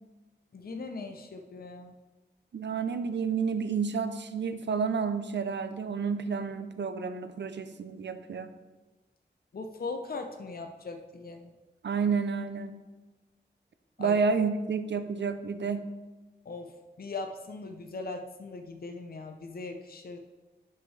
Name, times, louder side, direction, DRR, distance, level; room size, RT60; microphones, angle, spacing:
voice 1, 0.5-1.9 9.5-11.5 14.0-14.1 16.5-20.2, left 3 dB, 55° left, 5 dB, 0.6 m, -39 dB
voice 2, 2.5-8.5 11.8-12.8 14.0-15.9, right 5 dB, 80° right, 10 dB, 0.6 m, -30 dB
11.0 x 5.7 x 3.3 m, 1.2 s
wide cardioid pair, 85°, 18 cm